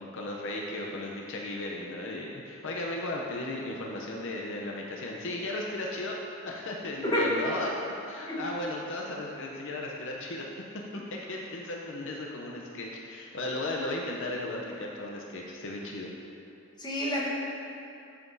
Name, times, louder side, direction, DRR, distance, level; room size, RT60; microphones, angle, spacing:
voice 1, 0.0-7.8 8.1-16.1, left 2 dB, 60° left, -1 dB, 0.6 m, -36 dB
voice 2, 16.8-17.3, left 1 dB, 20° left, -5 dB, 1.2 m, -28 dB
12.5 x 5.8 x 2.7 m, 2.7 s
head